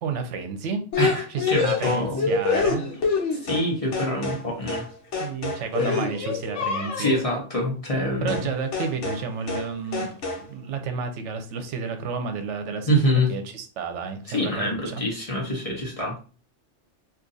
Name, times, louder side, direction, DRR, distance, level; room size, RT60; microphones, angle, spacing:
voice 1, 0.0-0.8 1.3-2.9 5.2-7.2 8.2-15.0, right 5 dB, 80° right, 7 dB, 0.9 m, -31 dB
sound 1, 0.9-3.7 3.9-4.4 4.7-4.9 5.1-7.2 8.3-8.5 8.7-9.2 9.5-9.7 9.9-10.4, left 4 dB, 75° left, 1.2 m, -26 dB
voice 2, 1.0-2.4 3.3-4.9 5.8-6.0 7.0-8.5 12.9-13.3 14.3-16.1, equal, 35° left, -2 dB, 0.8 m, -25 dB
2.7 x 2.5 x 3.8 m, 0.38 s
omnidirectional pair, 1.2 m